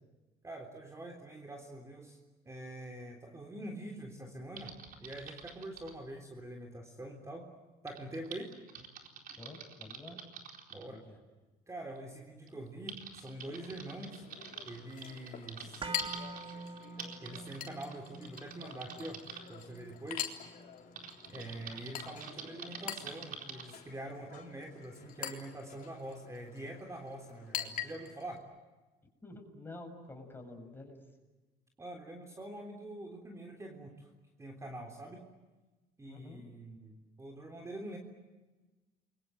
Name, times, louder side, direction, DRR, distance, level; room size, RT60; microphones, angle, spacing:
voice 1, 0.4-2.2 2.5-7.5 7.8-8.5 10.7-11.0 11.7-14.3 14.7-16.0 17.2-19.2 19.5-20.3 21.3-28.4 31.8-34.1 34.4-35.2 36.0-38.0, right 1 dB, 15° right, 2 dB, 3.6 m, -45 dB
Typing, 4.6-6.0 7.9-10.8 11.9-12.0 12.5-19.4 21.0-23.7, right 6 dB, 60° right, 4.2 m, -47 dB
voice 2, 9.4-10.2 10.8-11.2 16.9-17.2 29.2-31.0 36.0-36.4, left 2 dB, 10° left, 3 dB, 7.0 m, -49 dB
Chink clink, 13.4-28.4, left 10 dB, 55° left, 3.7 m, -45 dB
sound 1, 15.8-23.9 24.2-24.3, right 3 dB, 35° right, 2.2 m, -49 dB
29.0 x 23.5 x 7.8 m, 1.2 s
cardioid pair, 110°, 17 cm